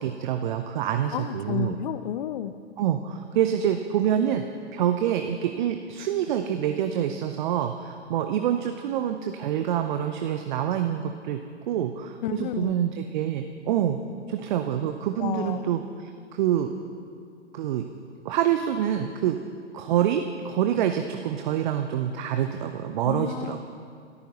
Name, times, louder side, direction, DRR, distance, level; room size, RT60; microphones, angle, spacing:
voice 1, 0.0-1.8 2.8-4.4 4.7-11.4 11.7-14.0 14.3-16.7 17.5-17.9 18.2-19.4 19.7-23.6, right 10 dB, 45° right, 6 dB, 0.8 m, -26 dB
voice 2, 1.1-2.5 12.2-12.8 15.2-15.7 23.0-23.6, left 11 dB, 45° left, 13 dB, 0.7 m, -31 dB
27.5 x 14.0 x 3.1 m, 2.3 s
figure-of-eight pair, 115°, 34 cm